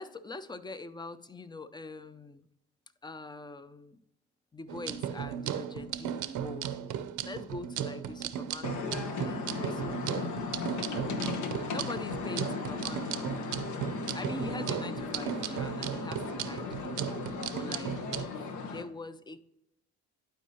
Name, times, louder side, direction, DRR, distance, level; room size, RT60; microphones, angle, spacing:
voice 1, 0.0-2.5 3.0-4.0 4.5-6.7 7.2-10.4 11.7-13.4 14.1-17.0 17.5-19.4, left 3 dB, 15° left, 13 dB, 0.5 m, -43 dB
sound 1, 4.7-18.3, right 9 dB, 75° right, 0.6 m, -36 dB
sound 2, 8.6-18.8, left 4 dB, 70° left, 1.0 m, -37 dB
11.5 x 4.7 x 2.8 m, 0.84 s
cardioid pair, 90°, 30 cm